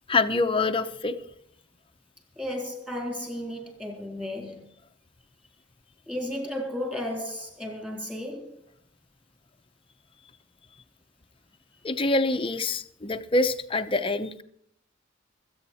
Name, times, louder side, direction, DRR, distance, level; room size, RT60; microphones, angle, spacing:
voice 1, 0.1-1.2 11.8-14.4, left 2 dB, 25° left, 0.9 m, -25 dB
voice 2, 2.4-4.7 6.1-8.6, left 1 dB, 5° right, 3.9 m, -34 dB
24.5 x 8.9 x 4.3 m
head